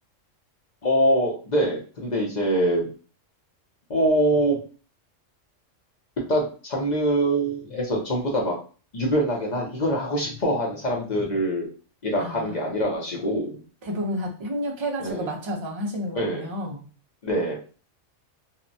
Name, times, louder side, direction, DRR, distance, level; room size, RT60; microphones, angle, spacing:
voice 1, 0.8-2.9 3.9-4.6 6.3-8.6 8.9-11.7 12.0-13.6 15.0-15.3 16.1-16.5 17.2-17.6, right 1 dB, 45° left, -1 dB, 0.6 m, -24 dB
voice 2, 12.2-12.6 13.8-16.8, equal, 45° right, 1 dB, 0.3 m, -30 dB
2.8 x 2.1 x 2.6 m, 0.37 s
omnidirectional pair, 1.3 m